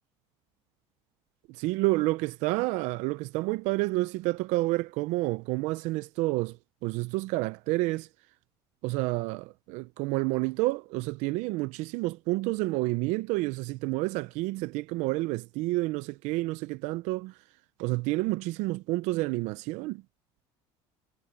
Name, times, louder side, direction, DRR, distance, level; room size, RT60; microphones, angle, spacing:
voice 1, 1.5-6.6 6.8-8.1 8.8-17.3 17.8-20.0, right 21 dB, 75° right, 0.5 m, -29 dB
cardioid pair, 120°, 12 cm